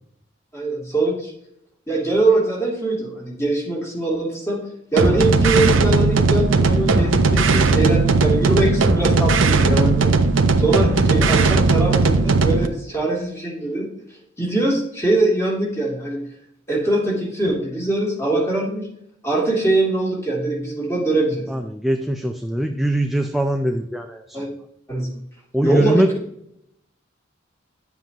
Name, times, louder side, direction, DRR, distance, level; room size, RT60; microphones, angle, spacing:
voice 1, 0.5-1.3 1.9-4.6 4.9-10.0 10.6-13.9 14.4-16.2 16.7-18.9 19.2-21.5 24.3-24.5 24.9-25.1 25.6-26.0, right 2 dB, 15° left, -3 dB, 2.9 m, -22 dB
sound 1, 5.0-12.7, right 3 dB, 85° right, 0.8 m, -17 dB
voice 2, 21.5-24.4 25.5-26.1, right 1 dB, ahead, 4 dB, 0.5 m, -22 dB
10.5 x 7.5 x 2.9 m, 0.74 s
head